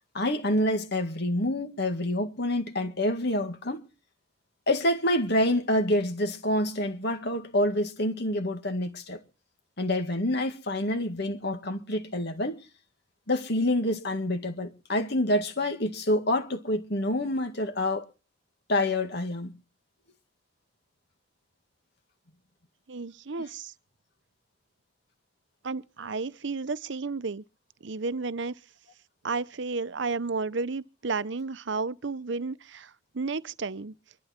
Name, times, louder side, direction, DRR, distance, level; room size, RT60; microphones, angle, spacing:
voice 1, 0.1-3.9 4.7-9.2 9.8-12.6 13.3-18.1 18.7-19.6, left 1 dB, 55° left, 2.0 m, -27 dB
voice 2, 22.9-23.7 25.6-27.4 27.8-28.5 29.2-33.9, right 4 dB, 60° right, 0.7 m, -32 dB
24.5 x 12.0 x 4.4 m
head